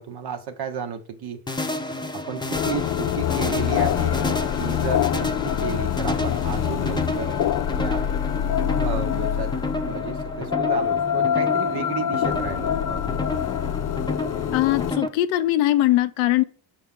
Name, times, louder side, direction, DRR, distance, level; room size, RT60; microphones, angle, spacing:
voice 1, 0.0-1.4 2.1-7.4 7.7-8.1 8.8-9.5 9.8-13.2, right 7 dB, 55° right, 0.8 m, -33 dB
sound 1, 1.5-15.1, left 2 dB, 10° left, 0.7 m, -30 dB
sound 2, 2.5-14.9, left 10 dB, 45° left, 0.4 m, -25 dB
voice 2, 14.5-16.4, left 15 dB, 85° left, 0.7 m, -21 dB
5.8 x 4.9 x 3.6 m
supercardioid pair, 65°, 45 cm